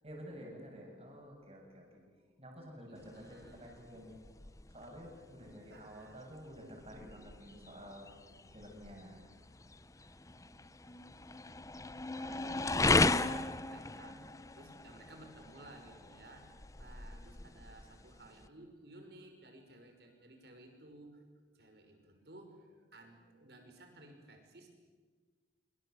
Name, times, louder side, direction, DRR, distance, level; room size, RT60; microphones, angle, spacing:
voice 1, 0.0-2.0 2.4-4.2 4.7-8.1 8.5-9.2 12.2-12.4 14.0-14.3, equal, 35° right, 1 dB, 7.8 m, -51 dB
voice 2, 2.9-3.8 5.7-6.2 9.1-9.2 12.2-14.3 14.5-21.2 21.5-24.7, right 2 dB, 60° right, 4 dB, 5.8 m, -56 dB
sound 1, 3.0-18.5, left 3 dB, 20° left, 0.7 m, -37 dB
26.0 x 25.5 x 8.2 m, 1.5 s
head